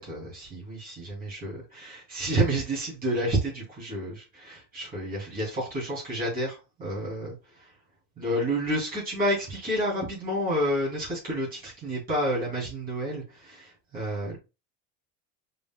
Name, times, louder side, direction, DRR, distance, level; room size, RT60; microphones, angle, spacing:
voice 1, 0.0-7.3 8.2-14.4, right 1 dB, 20° right, -6 dB, 2.7 m, -30 dB
5.0 x 3.9 x 2.2 m, 0.28 s
cardioid pair, 170°, 45 cm